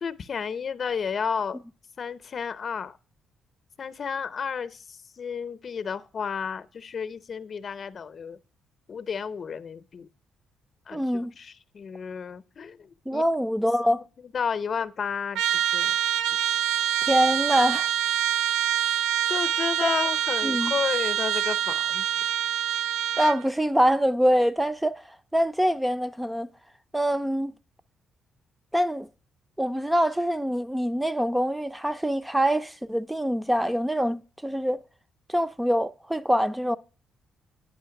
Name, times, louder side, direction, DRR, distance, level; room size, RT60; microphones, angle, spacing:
voice 1, 0.0-1.6 2.0-3.0 3.8-8.4 8.9-10.1 10.9-13.2 13.9-14.0 14.3-15.4 15.7-15.9 19.3-22.1, left 6 dB, 50° left, 0.7 m, -32 dB
voice 2, 10.9-11.3 13.1-14.0 17.0-17.9 19.8-19.9 20.4-20.7 23.2-25.0 25.3-26.5 26.9-27.5 28.7-29.1 29.6-34.8 35.3-36.8, equal, 5° right, 0.4 m, -24 dB
Trumpet, 15.3-23.4, right 10 dB, 90° right, 0.4 m, -26 dB
9.4 x 5.6 x 5.8 m
cardioid pair, 90°, 0 cm